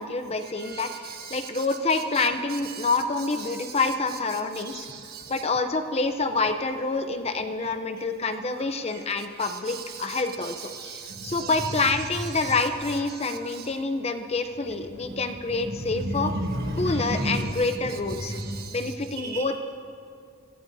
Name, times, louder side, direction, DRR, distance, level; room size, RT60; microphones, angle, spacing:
voice 1, 0.0-4.9 5.3-10.6 10.8-16.3 16.7-18.4 18.7-19.7, left 3 dB, 30° left, 7 dB, 0.7 m, -27 dB
voice 2, 4.7-5.3 10.7-11.3 16.0-17.4 18.4-18.8 19.2-19.4, right 1 dB, 50° right, 2 dB, 1.6 m, -31 dB
25.5 x 16.0 x 2.7 m, 2.4 s
head